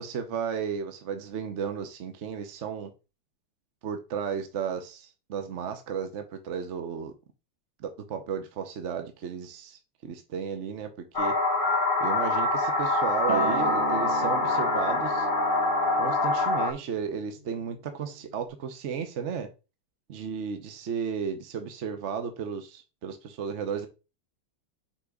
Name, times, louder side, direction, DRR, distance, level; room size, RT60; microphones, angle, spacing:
voice 1, 0.0-2.9 3.8-7.1 7.8-11.3 12.0-15.3 16.0-19.5 20.1-23.9, right 6 dB, 60° right, 0.7 m, -34 dB
sound 1, 11.1-16.7, left 2 dB, 30° left, 1.2 m, -25 dB
Acoustic guitar, 13.3-18.5, right 9 dB, 80° right, 1.9 m, -37 dB
6.0 x 4.0 x 4.8 m
omnidirectional pair, 2.3 m